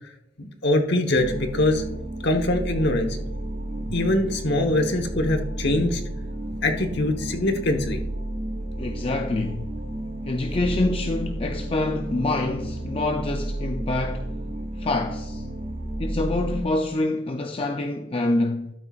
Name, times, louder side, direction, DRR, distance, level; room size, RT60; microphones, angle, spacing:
voice 1, 0.4-1.8 2.2-3.2 3.9-6.0 6.6-8.0, left 1 dB, 55° left, 1.1 m, -23 dB
sound 1, 1.1-16.6, right 1 dB, 45° right, 1.4 m, -32 dB
voice 2, 8.8-9.7 10.3-14.5 14.8-15.4 16.0-18.7, left 2 dB, 25° left, 0.4 m, -26 dB
12.5 x 8.7 x 2.4 m
head